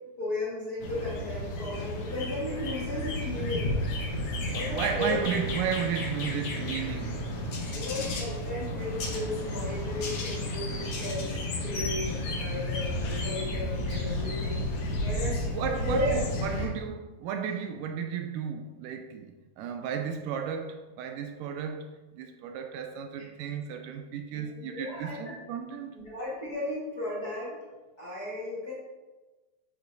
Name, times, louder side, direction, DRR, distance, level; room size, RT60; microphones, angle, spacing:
voice 1, 0.2-3.7 4.5-5.2 7.7-14.7 15.0-16.2 16.5-16.6 24.3-25.3 25.9-27.5 28.0-28.7, left 1 dB, 40° left, 1.5 m, -35 dB
sound 1, 0.8-16.7, left 1 dB, 60° left, 1.5 m, -32 dB
voice 2, 4.5-7.3 13.9-14.3 15.2-26.0, right 7 dB, 80° right, 2.1 m, -34 dB
9.0 x 7.3 x 2.7 m
omnidirectional pair, 3.9 m